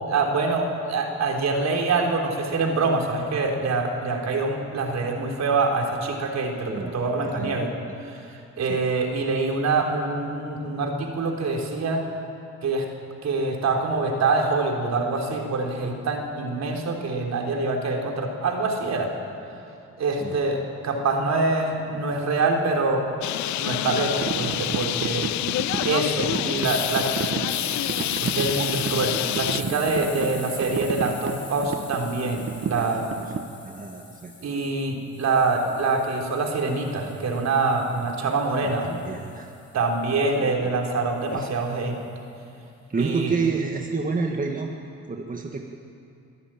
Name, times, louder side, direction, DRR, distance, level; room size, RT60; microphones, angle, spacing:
voice 1, 0.1-7.7 8.0-12.0 12.6-12.8 13.2-19.1 20.0-23.0 23.6-25.3 25.8-27.4 28.2-33.1 34.4-38.9 39.7-42.0 43.0-43.3, right 3 dB, 60° right, 1 dB, 3.7 m, -25 dB
voice 2, 6.6-8.0 8.7-8.8 20.2-20.4 26.5-26.8 32.7-32.8 33.3-34.6 38.6-39.5 40.4-40.7 41.3-41.5 42.9-44.7 45.1-45.7, right 4 dB, 25° right, 2 dB, 1.7 m, -30 dB
Bird, 23.2-29.6, left 15 dB, 70° left, 0.5 m, -28 dB
sound 1, 23.6-33.4, right 6 dB, 45° right, 1.1 m, -33 dB
sound 2, 26.6-34.7 35.2-39.4, left 4 dB, 40° left, 3.6 m, -40 dB
23.5 x 13.0 x 9.0 m, 2.6 s
cardioid pair, 90°, 30 cm